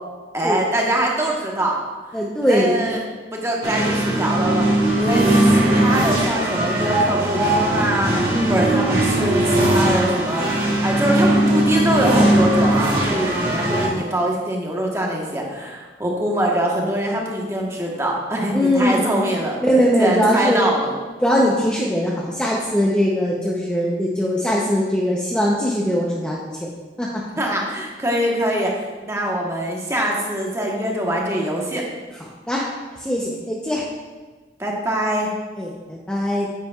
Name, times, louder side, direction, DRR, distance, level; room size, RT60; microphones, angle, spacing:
voice 1, 0.3-1.7 2.5-3.0 3.3-4.7 5.0-10.5 10.8-19.6 20.0-20.9 27.4-28.7 29.0-31.8 34.6-35.3, right 1 dB, 15° right, -2 dB, 1.1 m, -23 dB
voice 2, 2.1-2.9 8.3-8.7 13.1-14.1 18.5-19.3 19.6-20.7 21.2-26.7 27.0-27.1 32.5-32.6 33.0-33.8 35.6-36.5, equal, 5° left, -4 dB, 0.6 m, -21 dB
sound 1, 3.6-13.9, right 1 dB, 30° right, 2.5 m, -19 dB
9.2 x 8.2 x 2.3 m, 1.4 s
head